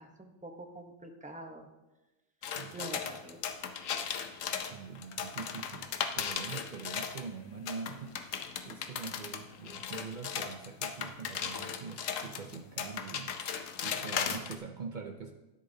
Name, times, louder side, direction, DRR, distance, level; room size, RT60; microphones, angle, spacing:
voice 1, 0.0-1.7 2.7-3.4, right 1 dB, 10° right, 3 dB, 0.5 m, -45 dB
sound 1, 2.4-7.3 7.7-14.6, left 7 dB, 65° left, 1.0 m, -37 dB
voice 2, 2.5-3.2 4.6-5.9 6.1-8.2 8.6-13.3 13.8-15.3, right 5 dB, 65° right, 5 dB, 0.4 m, -44 dB
12.0 x 10.0 x 2.7 m, 1.0 s
omnidirectional pair, 1.6 m